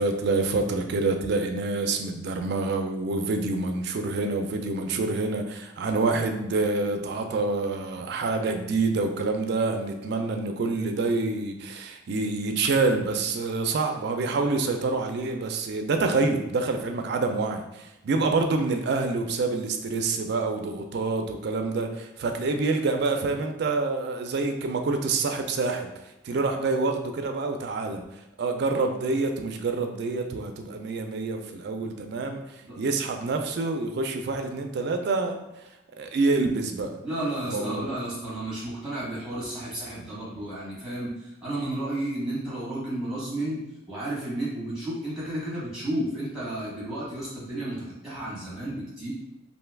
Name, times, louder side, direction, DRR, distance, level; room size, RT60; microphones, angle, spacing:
voice 1, 0.0-25.9 26.2-28.0 28.4-32.4 32.8-35.4 36.0-37.0 37.5-37.8, right 3 dB, 55° right, 5 dB, 0.3 m, -27 dB
voice 2, 37.0-49.1, right 1 dB, 5° right, -8 dB, 1.0 m, -32 dB
2.6 x 2.3 x 3.3 m, 0.93 s
head